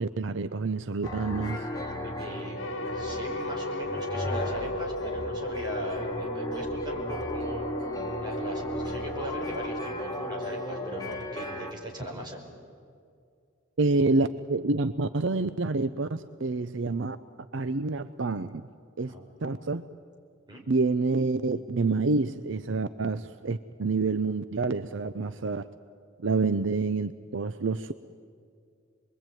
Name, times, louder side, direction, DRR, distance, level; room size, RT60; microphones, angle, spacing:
voice 1, 0.0-1.6 13.8-17.2 17.5-18.7 19.0-19.1 19.4-19.8 20.7-25.7 26.2-27.9, right 3 dB, 65° right, 12 dB, 0.6 m, -28 dB
sound 1, 1.0-11.7, left 1 dB, 20° left, 2.2 m, -36 dB
voice 2, 2.0-7.7 8.2-12.4 19.1-19.5 20.5-20.6, equal, 20° right, -1 dB, 5.1 m, -39 dB
sound 2, 2.6-11.9, left 1 dB, 85° left, 1.9 m, -35 dB
26.5 x 22.0 x 9.2 m, 2.3 s
head